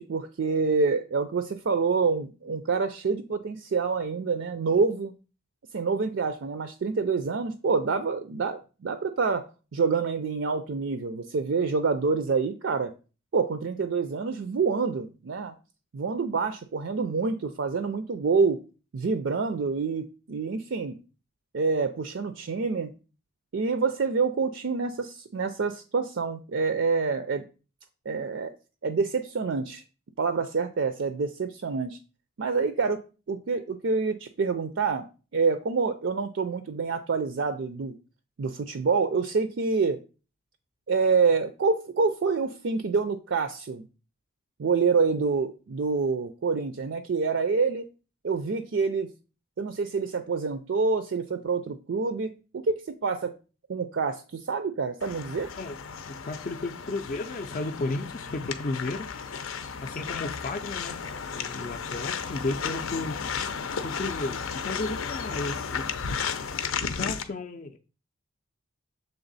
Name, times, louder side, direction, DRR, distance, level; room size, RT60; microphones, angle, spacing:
voice 1, 0.0-5.1 5.7-9.4 9.7-12.9 13.3-15.5 15.9-18.6 18.9-21.0 21.5-22.9 23.5-27.4 28.1-28.5 28.8-29.8 30.2-32.0 32.4-33.0 33.3-35.1 35.3-37.9 38.4-40.0 40.9-43.9 44.6-47.8 48.2-49.1 49.6-53.3 53.7-55.5, right 4 dB, 65° right, 0.4 m, -27 dB
sound 1, 55.0-67.2, left 6 dB, 85° left, 0.6 m, -34 dB
voice 2, 56.2-59.1 59.8-61.0 61.3-63.2 63.8-65.9 66.8-67.8, left 2 dB, 40° left, 0.4 m, -33 dB
6.9 x 3.5 x 4.0 m
head